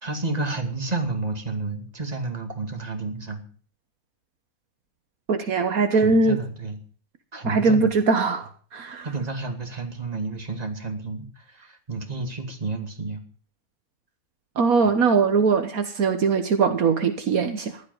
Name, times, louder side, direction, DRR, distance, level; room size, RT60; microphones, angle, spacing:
voice 1, 0.0-3.4 5.9-6.8 7.3-7.9 9.0-13.2 14.8-14.9, right 3 dB, 25° right, 2.5 m, -30 dB
voice 2, 5.3-6.4 7.4-9.1 14.6-17.8, right 4 dB, 70° right, 1.6 m, -21 dB
15.5 x 11.5 x 5.4 m
omnidirectional pair, 1.5 m